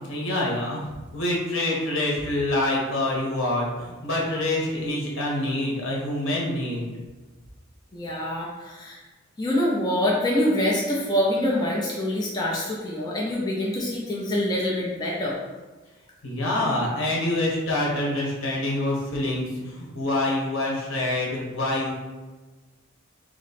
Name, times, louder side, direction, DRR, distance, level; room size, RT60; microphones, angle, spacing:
voice 1, 0.1-6.9 16.2-21.9, left 1 dB, 70° left, -3 dB, 1.1 m, -26 dB
voice 2, 7.9-9.0 9.4-15.4, left 1 dB, 20° left, -4 dB, 0.5 m, -25 dB
3.1 x 3.0 x 4.1 m, 1.3 s
head